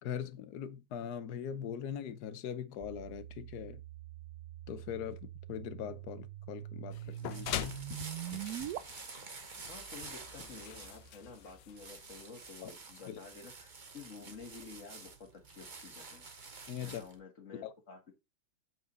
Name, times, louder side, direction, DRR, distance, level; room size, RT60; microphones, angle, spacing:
voice 1, 0.0-3.8 4.7-7.8 12.6-12.7 13.1-13.2 16.7-17.0 17.6-17.7, left 8 dB, 65° left, 1.2 m, -41 dB
sound 1, 2.8-8.8, right 13 dB, 80° right, 0.8 m, -44 dB
sound 2, 6.9-12.3, left 12 dB, 85° left, 1.5 m, -43 dB
sound 3, 7.0-17.2, right 4 dB, 35° right, 0.9 m, -49 dB
voice 2, 9.7-16.3 16.8-18.1, left 4 dB, 40° left, 2.2 m, -51 dB
8.0 x 4.7 x 3.9 m
omnidirectional pair, 2.1 m